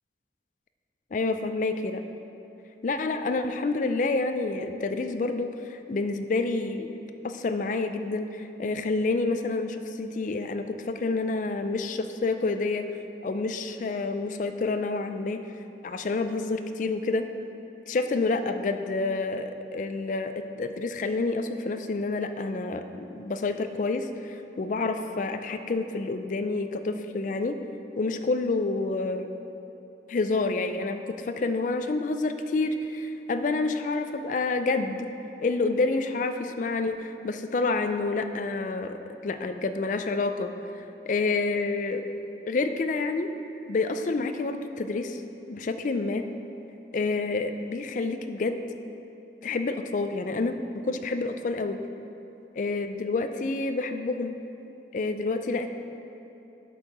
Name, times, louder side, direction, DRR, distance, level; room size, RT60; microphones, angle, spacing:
voice 1, 1.1-2.0 2.8-6.9 7.2-12.9 13.2-15.4 15.8-17.3 17.9-22.8 23.1-27.6 28.0-29.3 30.1-35.1 35.4-39.0 39.2-40.5 40.7-42.0 42.5-43.3 43.7-45.2 45.5-46.2 46.9-48.6 49.4-51.8 52.6-54.3 54.9-55.7, left 3 dB, 45° left, 8 dB, 0.4 m, -28 dB
8.4 x 4.5 x 5.3 m, 3.0 s
head